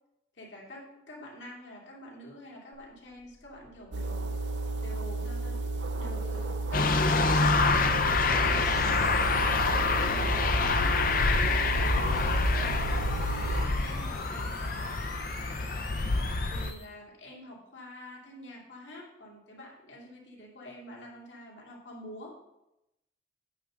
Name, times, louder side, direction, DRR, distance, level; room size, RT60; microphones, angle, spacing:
voice 1, 0.3-5.6 6.0-10.6 11.2-12.8 13.6-15.0 16.5-22.3, left 1 dB, 90° left, -3 dB, 2.5 m, -46 dB
sound 1, 2.7-16.9, left 1 dB, 20° left, 2.2 m, -46 dB
sound 2, 3.9-13.7, right 3 dB, 80° right, 0.5 m, -33 dB
sound 3, 6.7-16.7, left 3 dB, 50° left, 0.6 m, -26 dB
9.2 x 3.8 x 6.3 m, 0.91 s
head